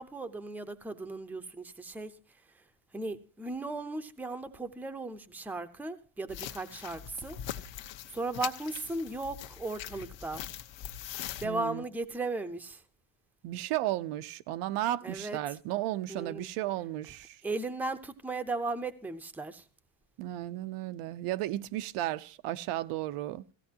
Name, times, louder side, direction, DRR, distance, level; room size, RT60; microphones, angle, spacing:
voice 1, 0.0-2.1 2.9-7.4 8.1-10.4 11.4-12.8 15.0-15.4 16.1-16.5 17.4-19.6, right 2 dB, 5° right, 0.6 m, -36 dB
sound 1, 6.3-11.5, left 11 dB, 60° left, 1.1 m, -42 dB
voice 2, 11.4-11.8 13.4-17.4 20.2-23.4, right 15 dB, 80° right, 0.8 m, -34 dB
18.0 x 15.5 x 2.8 m
cardioid pair, 170°, 50 cm